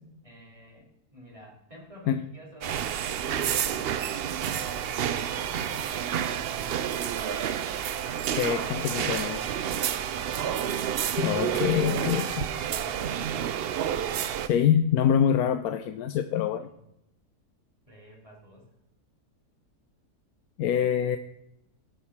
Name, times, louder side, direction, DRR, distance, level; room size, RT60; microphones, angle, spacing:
voice 1, 0.2-7.0 10.0-10.4 11.6-13.6 16.6-16.8 17.8-18.7, left 1 dB, 20° right, -4 dB, 3.8 m, -50 dB
sound 1, 2.6-14.5, right 9 dB, 80° right, 0.5 m, -29 dB
voice 2, 8.4-9.4 11.2-12.5 14.4-16.7 20.6-21.2, left 9 dB, 75° left, 9 dB, 1.1 m, -25 dB
18.0 x 6.4 x 4.2 m, 0.81 s
omnidirectional pair, 1.7 m